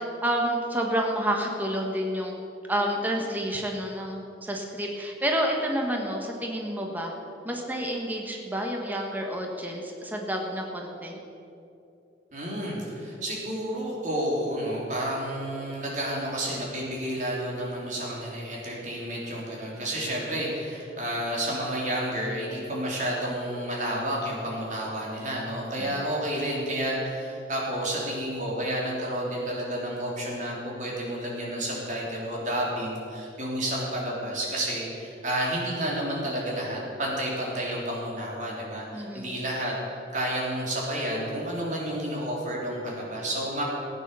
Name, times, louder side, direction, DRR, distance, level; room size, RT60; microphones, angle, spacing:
voice 1, 0.0-2.3 2.7-7.1 7.4-11.2 25.8-26.0 38.9-39.3, equal, 10° right, 0 dB, 1.4 m, -29 dB
voice 2, 12.3-43.6, right 1 dB, 45° right, -4 dB, 3.6 m, -30 dB
15.0 x 9.2 x 7.0 m, 2.8 s
head